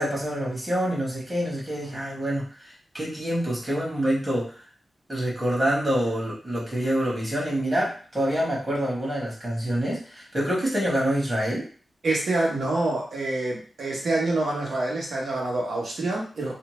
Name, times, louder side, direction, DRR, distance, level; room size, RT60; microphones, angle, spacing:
voice 1, 0.0-2.7 2.9-4.5 5.1-11.6, equal, 25° right, -5 dB, 1.2 m, -26 dB
voice 2, 12.0-16.5, right 2 dB, 80° right, -3 dB, 1.0 m, -26 dB
2.6 x 2.1 x 3.0 m, 0.41 s
wide cardioid pair, 140°, 0 cm